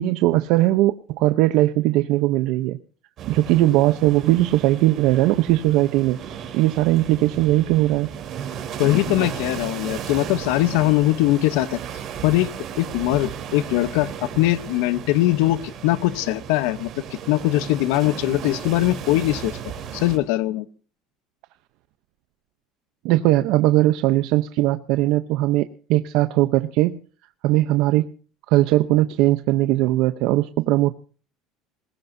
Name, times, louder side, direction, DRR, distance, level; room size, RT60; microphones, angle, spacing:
voice 1, 0.0-2.8 3.3-6.2 6.5-8.1 23.0-27.0 27.4-28.1 28.5-30.9, right 16 dB, 65° right, 11 dB, 0.7 m, -19 dB
sound 1, 3.2-20.2, right 8 dB, 40° right, 3.5 m, -35 dB
voice 2, 8.8-11.8 12.2-12.5 12.8-16.9 17.3-19.6 19.9-20.7, left 17 dB, 85° left, 15 dB, 0.8 m, -21 dB
21.5 x 19.5 x 2.7 m, 0.39 s
cardioid pair, 150°, 0 cm